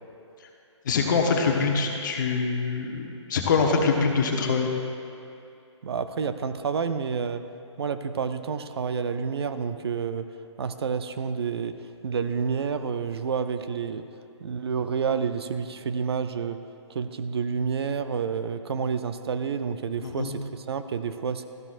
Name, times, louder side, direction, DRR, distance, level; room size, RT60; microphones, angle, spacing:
voice 1, 0.8-4.7 20.0-20.3, left 4 dB, 40° left, 2 dB, 1.1 m, -24 dB
voice 2, 5.8-7.4 7.8-10.3 10.6-14.0 14.4-16.6 16.9-21.5, right 6 dB, 55° right, 10 dB, 0.5 m, -29 dB
13.5 x 12.0 x 2.5 m, 2.6 s
hypercardioid pair, 165°, 16 cm